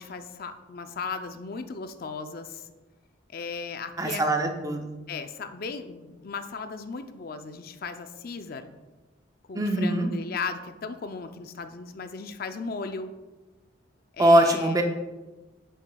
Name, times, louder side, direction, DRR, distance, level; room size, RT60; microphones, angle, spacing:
voice 1, 0.0-2.7 3.3-4.3 5.1-8.7 9.5-13.1 14.2-14.8, left 4 dB, 45° left, 8 dB, 0.4 m, -36 dB
voice 2, 4.0-4.9 9.5-10.1 14.2-14.8, right 1 dB, 15° right, 4 dB, 0.6 m, -22 dB
8.9 x 6.4 x 2.3 m, 1.2 s
head